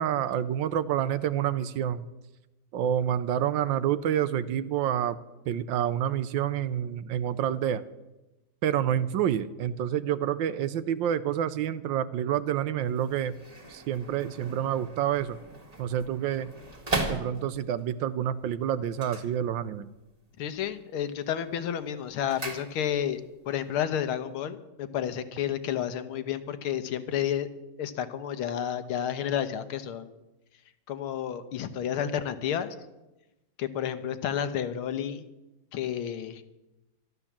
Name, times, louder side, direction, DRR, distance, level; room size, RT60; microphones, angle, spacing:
voice 1, 0.0-2.0 2.7-5.2 5.5-7.8 8.6-13.3 13.7-15.4 15.8-16.5 17.1-19.9, right 10 dB, 70° right, 14 dB, 1.3 m, -28 dB
sound 1, 12.8-17.8 18.9-20.0 20.3-20.8 21.2-23.2 23.5-23.6, right 2 dB, 20° right, 1.9 m, -37 dB
voice 2, 20.4-27.5 27.8-30.1 30.9-32.8 33.6-35.3 35.7-36.4, left 9 dB, 80° left, 11 dB, 1.9 m, -31 dB
13.5 x 12.5 x 7.3 m, 0.99 s
omnidirectional pair, 2.3 m